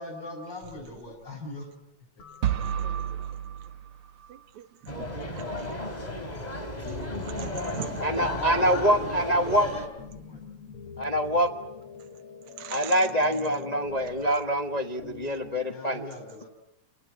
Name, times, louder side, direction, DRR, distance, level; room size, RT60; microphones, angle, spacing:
voice 1, 0.0-1.7 2.2-2.7 7.6-10.4 15.6-16.5, left 2 dB, 35° left, -1 dB, 7.7 m, -42 dB
sound 1, 0.6-1.4 2.2-3.3 5.0-5.6 6.8-8.0 8.3-15.7, left 6 dB, 50° left, 2.5 m, -45 dB
sound 2, 2.4-4.5, right 10 dB, 55° right, 1.7 m, -31 dB
voice 2, 2.5-3.0 4.3-4.7 5.0-5.5 7.2-8.0 12.6-12.9, right 10 dB, 75° right, 11 dB, 2.5 m, -41 dB
sound 3, 4.9-9.9, left 1 dB, 15° left, 3.2 m, -33 dB
voice 3, 8.0-9.7 11.0-11.5 12.7-16.0, equal, 75° left, 5 dB, 0.3 m, -25 dB
29.0 x 19.0 x 9.0 m, 0.85 s
omnidirectional pair, 3.4 m